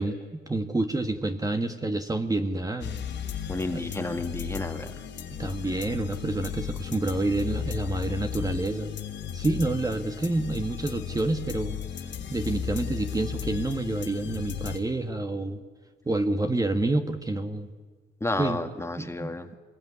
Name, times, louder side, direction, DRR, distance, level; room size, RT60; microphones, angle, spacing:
voice 1, 0.0-3.0 3.7-3.8 5.4-8.9 9.3-15.6 16.0-17.7 18.4-18.6 19.0-19.5, right 2 dB, 20° right, 6 dB, 1.5 m, -28 dB
sound 1, 2.8-14.8, left 8 dB, 70° left, 2.7 m, -35 dB
voice 2, 3.5-5.1 18.2-19.5, left 2 dB, 15° left, 7 dB, 1.8 m, -31 dB
25.0 x 21.0 x 9.7 m, 1.4 s
cardioid pair, 90°, 20 cm